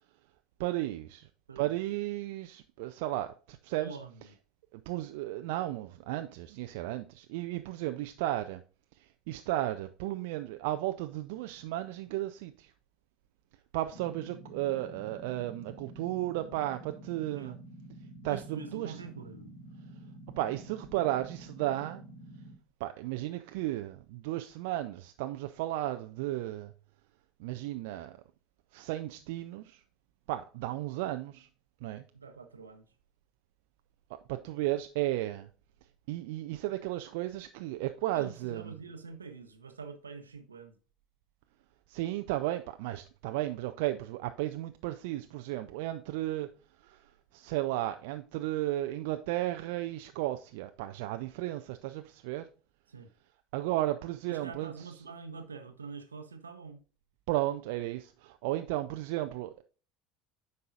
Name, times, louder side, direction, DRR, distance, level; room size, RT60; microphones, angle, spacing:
voice 1, 0.6-1.3 1.6-4.0 4.7-8.6 9.0-12.7 13.7-17.6 18.2-19.0 20.4-22.0 22.8-26.7 27.4-28.2 28.7-29.8 30.3-31.5 31.8-32.0 34.3-35.5 36.1-38.7 41.9-46.5 46.8-52.5 53.5-55.0 57.3-59.6, right 15 dB, 60° right, 0.4 m, -34 dB
voice 2, 3.8-4.1 17.3-17.6 18.3-19.5 32.1-32.8 38.1-40.8 52.9-53.1 54.3-56.8, right 5 dB, 80° right, 0.9 m, -45 dB
sound 1, 13.9-22.5, right 1 dB, 80° left, 2.5 m, -49 dB
9.3 x 5.4 x 2.4 m
figure-of-eight pair, 70°, 0 cm